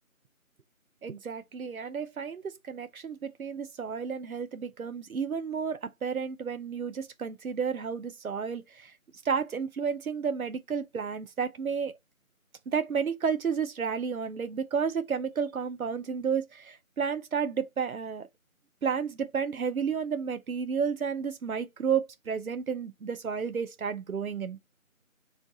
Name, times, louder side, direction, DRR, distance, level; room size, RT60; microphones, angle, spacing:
voice 1, 1.0-8.9 9.2-12.0 12.7-18.3 18.8-24.6, right 6 dB, 90° right, 0.6 m, -31 dB
4.1 x 3.1 x 3.7 m
figure-of-eight pair, 180°, 41 cm